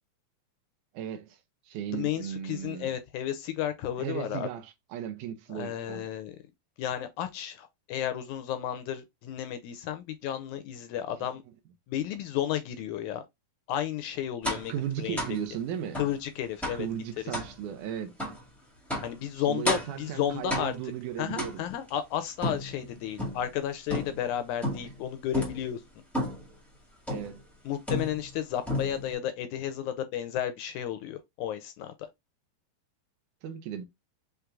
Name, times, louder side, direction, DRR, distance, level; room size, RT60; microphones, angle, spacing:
voice 1, 0.9-1.4 1.7-2.9 4.0-6.1 14.7-16.0 16.7-18.1 19.5-21.6 27.1-27.4 33.4-33.9, right 10 dB, 80° right, 2.0 m, -36 dB
voice 2, 1.9-4.5 5.5-6.4 6.8-11.4 11.9-13.2 13.7-15.4 16.0-16.9 17.3-17.4 19.0-20.8 21.2-25.8 27.7-31.9, left 10 dB, 80° left, 1.9 m, -33 dB
sound 1, 14.4-14.7 15.2-15.4 15.9-16.2 16.6-16.9 17.3-17.5 18.2-18.4 18.9-19.2 19.6-20.0 20.5-20.9 21.4-21.9 22.4-23.5 23.9-24.3 24.6-25.0 25.3-25.6 26.1-26.5 27.1-27.4 27.9-28.4 28.7-29.1, left 1 dB, ahead, 0.7 m, -32 dB
5.8 x 3.3 x 2.4 m
omnidirectional pair, 3.8 m